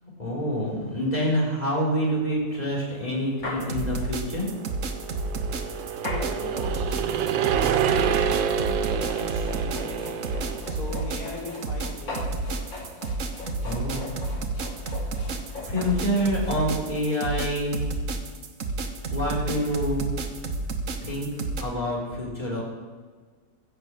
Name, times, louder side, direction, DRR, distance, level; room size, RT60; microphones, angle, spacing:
voice 1, 0.0-4.5 9.9-10.1 13.4-14.2 15.6-17.9 19.1-20.1 21.0-21.3 21.6-22.6, equal, 20° left, -4 dB, 4.0 m, -27 dB
sound 1, 2.5-2.6 3.0-3.1 3.4-3.7 4.9-16.6, left 2 dB, 90° left, 3.2 m, -40 dB
sound 2, 3.6-21.6, right 3 dB, 50° right, 1.3 m, -31 dB
sound 3, 4.1-11.1, right 8 dB, 85° right, 1.5 m, -28 dB
voice 2, 5.8-7.2 7.8-10.0 10.7-12.3, left 2 dB, 55° left, -5 dB, 4.1 m, -39 dB
15.0 x 6.9 x 7.6 m, 1.5 s
omnidirectional pair, 2.0 m